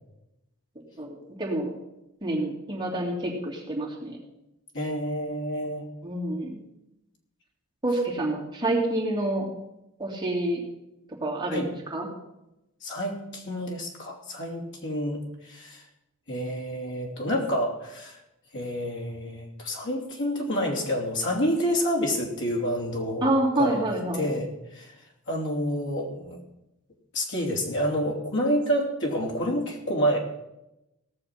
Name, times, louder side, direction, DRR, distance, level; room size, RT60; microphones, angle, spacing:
voice 1, 1.0-1.7 2.2-4.2 6.0-6.6 7.8-9.4 10.0-10.6 11.2-11.6 11.9-12.1 23.2-24.2, right 1 dB, 20° right, -4 dB, 3.1 m, -27 dB
voice 2, 4.7-5.8 11.5-11.7 12.8-15.8 16.3-18.2 18.5-23.3 23.6-23.9 24.1-24.9 25.3-26.4 27.1-30.2, equal, 55° left, 0 dB, 2.9 m, -28 dB
17.5 x 6.7 x 6.0 m, 0.90 s
head